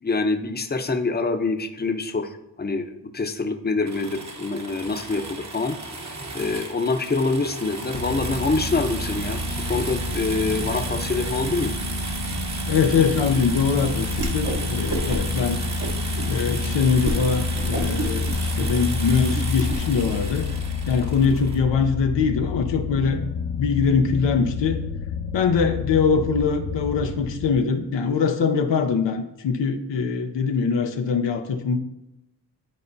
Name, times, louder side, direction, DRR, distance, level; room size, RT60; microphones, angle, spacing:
voice 1, 0.0-5.8 6.3-9.4 9.7-11.7, left 3 dB, 25° left, 5 dB, 0.7 m, -25 dB
sound 1, 3.9-21.6, right 2 dB, 40° right, 1.1 m, -34 dB
sound 2, 7.9-27.6, left 3 dB, 60° left, 0.8 m, -29 dB
voice 2, 12.7-15.6 16.3-18.3 18.6-20.5 20.9-23.2 23.6-24.8 25.3-31.8, left 5 dB, 85° left, 5 dB, 0.7 m, -22 dB
Whoosh swoosh swish, 14.1-14.6 14.9-15.4 15.8-16.3 16.7-16.8 17.0-17.2 17.6-19.8, right 1 dB, 55° right, 1.3 m, -29 dB
10.5 x 4.2 x 2.7 m, 0.87 s
cardioid pair, 50°, 43 cm